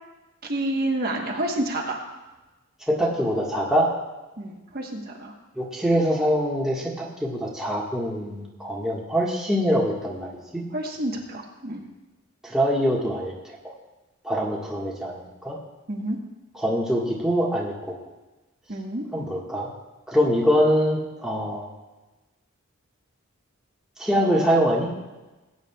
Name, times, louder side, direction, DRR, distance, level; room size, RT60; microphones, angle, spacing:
voice 1, 0.4-2.0 4.4-5.3 10.7-11.8 15.9-16.2 18.7-19.1, right 1 dB, 45° right, 0 dB, 1.2 m, -29 dB
voice 2, 2.9-3.9 5.6-10.6 12.4-13.5 14.2-15.6 16.6-17.9 19.1-19.7 20.1-21.7 24.0-24.9, equal, 5° right, -5 dB, 1.5 m, -24 dB
20.5 x 9.3 x 2.3 m, 1.1 s
head